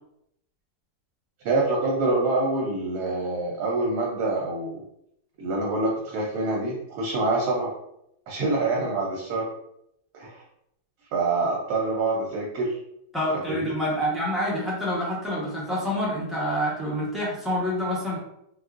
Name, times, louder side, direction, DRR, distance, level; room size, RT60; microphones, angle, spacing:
voice 1, 1.4-4.8 5.4-7.7 8.3-9.5 10.1-10.4 11.1-12.8 13.5-13.7, right 2 dB, 70° right, -2 dB, 1.1 m, -26 dB
voice 2, 13.1-18.2, equal, ahead, -8 dB, 0.4 m, -27 dB
3.8 x 2.3 x 2.4 m, 0.78 s
omnidirectional pair, 1.9 m